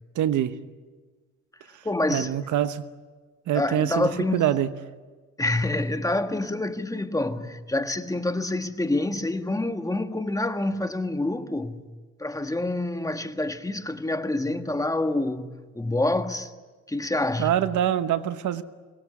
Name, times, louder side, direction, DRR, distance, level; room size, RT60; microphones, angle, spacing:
voice 1, 0.1-0.6 1.7-1.8 2.1-2.8 3.5-4.7 17.4-18.6, right 11 dB, 75° right, 1.2 m, -25 dB
voice 2, 1.8-2.4 3.5-4.5 5.4-11.9 12.2-15.5 15.7-16.5 16.9-17.6, left 2 dB, 10° left, 1.6 m, -27 dB
24.0 x 20.0 x 9.6 m
cardioid pair, 90°, 30 cm